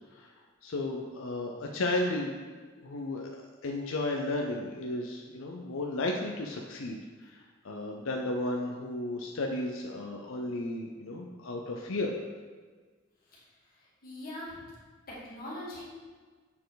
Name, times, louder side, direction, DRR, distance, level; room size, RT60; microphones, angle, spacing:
voice 1, 0.6-2.5 2.8-12.1, left 2 dB, 65° left, 1 dB, 0.6 m, -34 dB
voice 2, 13.7-14.7 15.1-15.9, left 1 dB, 45° left, -6 dB, 2.0 m, -42 dB
7.3 x 4.5 x 4.0 m, 1.5 s
head